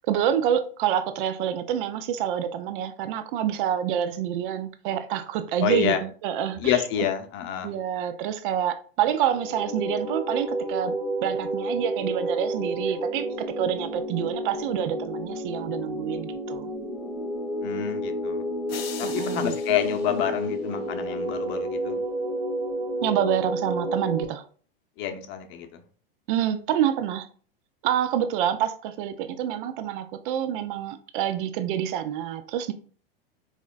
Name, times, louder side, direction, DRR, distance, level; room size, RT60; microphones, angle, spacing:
voice 1, 0.1-6.0 6.2-6.8 7.6-10.9 11.2-16.7 19.0-19.5 23.0-24.4 26.3-27.3 27.8-32.7, right 10 dB, 60° right, 0.4 m, -27 dB
voice 2, 5.6-6.0 6.6-7.7 17.6-18.4 19.0-22.0 25.0-25.8, left 10 dB, 40° left, 0.6 m, -28 dB
sound 1, 9.3-24.3, right 1 dB, 5° right, 0.9 m, -30 dB
sound 2, 18.7-21.0, left 8 dB, 90° left, 0.5 m, -41 dB
4.1 x 2.9 x 2.3 m
hypercardioid pair, 105°, 29 cm